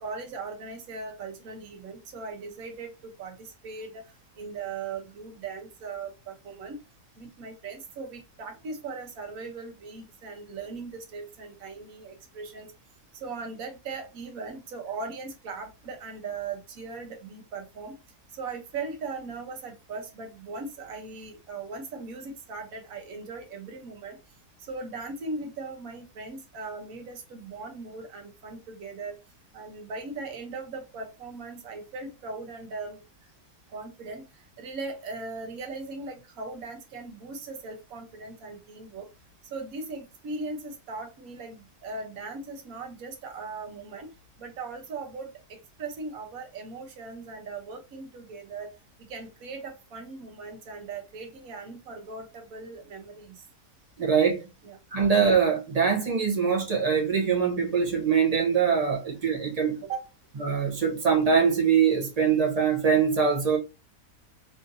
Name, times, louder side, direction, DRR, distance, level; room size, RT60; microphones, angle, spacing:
voice 1, 0.0-4.0 4.4-6.8 7.2-12.7 13.1-18.0 18.3-24.2 24.6-29.2 29.5-33.0 33.7-39.1 39.5-44.1 44.4-48.7 49.1-53.5 54.6-54.8 59.8-60.1, right 4 dB, 65° right, 1.3 m, -39 dB
voice 2, 54.0-54.5 54.9-59.8 60.4-63.6, right 6 dB, 35° right, 0.7 m, -23 dB
3.6 x 2.6 x 2.6 m
omnidirectional pair, 1.6 m